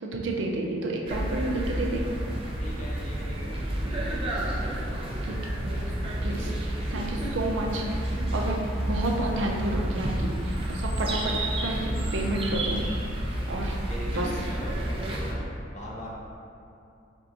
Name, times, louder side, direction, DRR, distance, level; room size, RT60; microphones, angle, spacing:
voice 1, 0.0-2.0 5.3-5.4 5.6-5.8 6.2-6.6 6.9-8.6 8.9-11.3 11.6-12.8 13.5-13.8 14.2-14.3, right 1 dB, 80° right, 0 dB, 0.5 m, -30 dB
sound 1, 1.1-15.3, right 1 dB, 30° right, 0.5 m, -30 dB
voice 2, 2.6-3.8 13.9-15.4 15.7-16.2, equal, 35° left, -4 dB, 0.6 m, -40 dB
4.5 x 3.6 x 2.6 m, 2.6 s
head